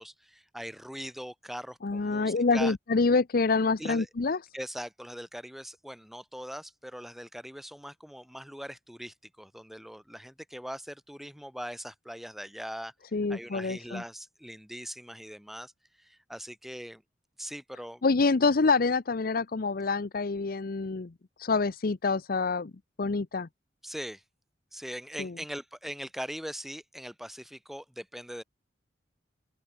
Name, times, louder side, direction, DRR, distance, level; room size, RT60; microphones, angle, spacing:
voice 1, 0.0-2.7 3.8-4.1 4.5-12.9 13.3-15.7 16.0-17.0 17.4-18.0 23.8-24.2 24.7-28.4, equal, ahead, 3.0 m, -41 dB
voice 2, 1.8-4.4 13.1-14.0 18.0-21.1 21.4-22.7 23.0-23.5 25.2-25.3, left 4 dB, 55° left, 0.6 m, -26 dB
open air
head